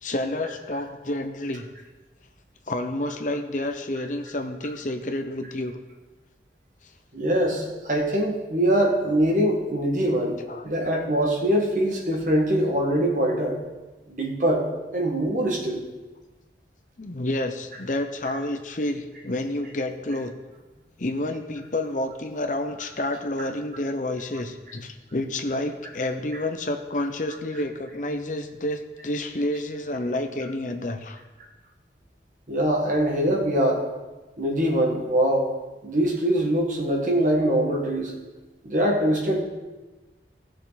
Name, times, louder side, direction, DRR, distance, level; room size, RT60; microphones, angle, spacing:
voice 1, 0.0-1.7 2.7-5.8 10.5-10.6 17.0-20.3 21.0-31.2, left 1 dB, 45° left, 6 dB, 0.8 m, -29 dB
voice 2, 7.1-10.4 10.6-13.6 14.1-15.8 18.3-18.4 32.5-33.8 34.4-35.5 35.8-38.1 38.6-39.4, right 1 dB, 45° right, -1 dB, 1.8 m, -23 dB
15.5 x 6.6 x 4.1 m, 1.2 s
head